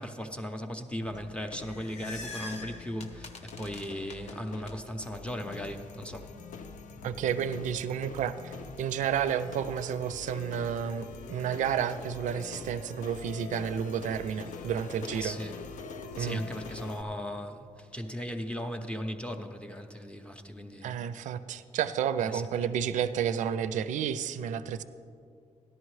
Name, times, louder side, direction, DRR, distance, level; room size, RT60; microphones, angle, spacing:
voice 1, 0.0-6.3 15.1-15.7 16.2-21.0 22.2-22.4, equal, 10° left, 0.5 m, -37 dB
sound 1, 1.0-17.0, left 4 dB, 90° left, 0.6 m, -44 dB
sound 2, 1.4-4.7, left 2 dB, 60° left, 0.9 m, -44 dB
voice 2, 7.0-15.4 16.2-16.4 20.8-24.8, right 8 dB, 80° right, 0.4 m, -31 dB
14.0 x 11.0 x 3.2 m
wide cardioid pair, 135°, 13 cm